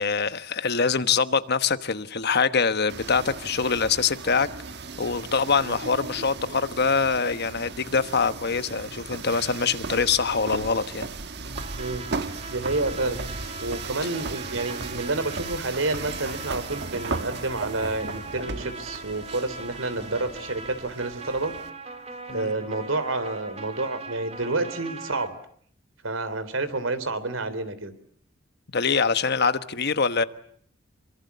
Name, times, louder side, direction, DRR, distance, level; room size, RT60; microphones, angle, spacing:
voice 1, 0.0-4.5 5.0-11.1 22.3-22.5 28.7-30.2, left 5 dB, 55° left, 1.2 m, -24 dB
sound 1, 2.9-21.7, right 4 dB, 60° right, 1.4 m, -36 dB
sound 2, 11.6-25.3, right 3 dB, 35° right, 3.6 m, -41 dB
voice 2, 11.8-13.2 13.6-21.5 22.3-25.3 26.0-27.9, right 2 dB, 90° right, 3.5 m, -29 dB
27.0 x 24.5 x 8.3 m
head